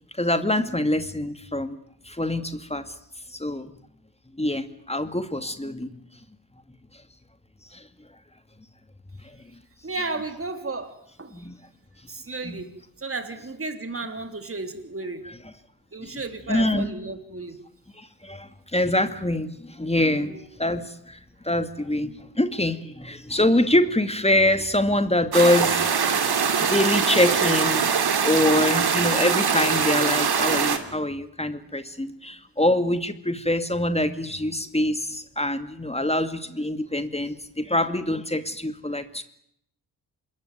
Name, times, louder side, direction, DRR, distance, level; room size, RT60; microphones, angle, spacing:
voice 1, 0.2-1.8 2.1-2.9 3.3-3.7 4.4-5.9 7.7-7.8 11.3-11.6 12.4-12.6 16.0-16.1 16.5-16.9 18.0-21.2 21.4-26.2 26.6-27.9 28.2-39.2, left 1 dB, 15° left, 9 dB, 2.4 m, -24 dB
voice 2, 9.8-11.5 12.1-12.7 13.0-15.3 15.9-17.6 20.1-20.4, right 3 dB, 30° right, 7 dB, 3.7 m, -33 dB
sound 1, 25.3-30.8, right 6 dB, 55° right, 3.2 m, -22 dB
26.5 x 21.5 x 9.4 m, 0.73 s
hypercardioid pair, 40°, 47 cm